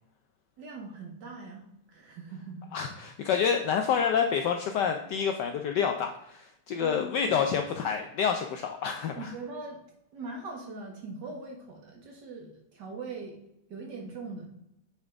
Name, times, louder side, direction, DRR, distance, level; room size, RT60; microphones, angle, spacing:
voice 1, 0.6-2.8 6.8-7.4 9.2-9.8 10.1-13.4 13.7-14.5, right 3 dB, 55° right, 0 dB, 1.9 m, -41 dB
voice 2, 2.7-9.3, left 7 dB, 75° left, 5 dB, 1.0 m, -28 dB
8.6 x 3.8 x 3.5 m, 0.80 s
omnidirectional pair, 2.3 m